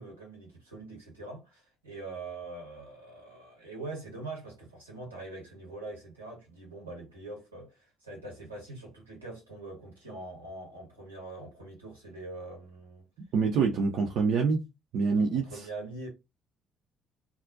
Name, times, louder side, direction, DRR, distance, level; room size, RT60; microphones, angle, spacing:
voice 1, 0.0-13.0 15.2-16.1, right 2 dB, 85° right, 0.9 m, -43 dB
voice 2, 13.3-14.6 14.9-15.7, right 5 dB, 55° right, 0.4 m, -26 dB
2.4 x 2.1 x 2.5 m
figure-of-eight pair, 45°, 0 cm